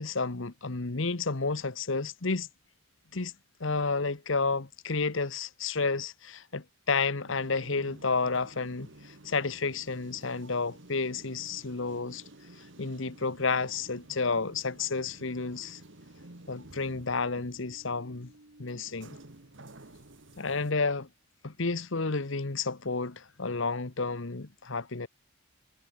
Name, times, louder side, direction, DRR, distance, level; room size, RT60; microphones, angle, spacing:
voice 1, 0.0-2.5 3.1-3.3 3.6-12.2 12.6-15.8 16.5-18.3 18.6-19.2 20.4-21.1 21.4-25.1, left 4 dB, 65° left, 1.2 m, -31 dB
sound 1, 7.3-20.7, right 1 dB, 60° right, 2.1 m, -52 dB
head